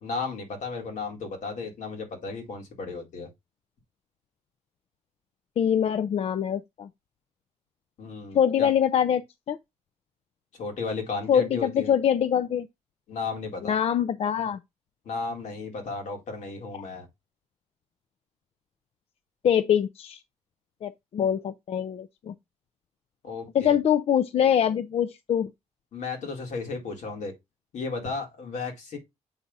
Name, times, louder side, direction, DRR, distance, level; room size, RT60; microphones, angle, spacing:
voice 1, 0.0-3.3 8.0-8.7 10.6-11.9 13.1-13.8 15.1-17.1 23.2-23.8 25.9-27.3 27.7-29.0, left 4 dB, 80° left, 2.1 m, -34 dB
voice 2, 5.6-6.9 8.3-9.2 9.5-9.6 11.3-12.7 13.6-14.6 19.4-20.2 20.8-22.3 23.5-25.5, left 9 dB, 55° left, 0.4 m, -24 dB
7.1 x 2.5 x 5.3 m
wide cardioid pair, 135°, 12 cm